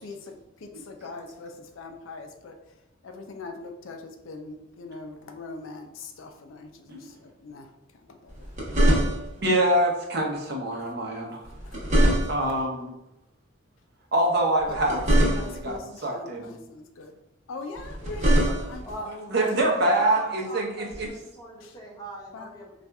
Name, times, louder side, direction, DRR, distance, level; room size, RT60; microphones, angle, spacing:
voice 1, 0.0-2.8 3.0-7.7 8.1-8.5 11.6-11.8 12.1-12.2 14.7-15.0 15.3-17.2 17.5-19.5 21.6-21.8 22.3-22.6, left 3 dB, 85° left, 5 dB, 0.4 m, -41 dB
sound 1, 8.3-9.5 11.4-12.6 14.6-15.8 17.8-18.9 20.9-21.1, equal, 40° right, 1.0 m, -23 dB
voice 2, 9.4-11.4 12.3-12.9 14.1-15.8 16.0-16.5 19.3-21.1, right 1 dB, 55° right, -1 dB, 0.7 m, -25 dB
voice 3, 19.7-22.7, right 1 dB, 20° left, -2 dB, 0.7 m, -39 dB
4.1 x 2.4 x 2.3 m, 0.89 s
head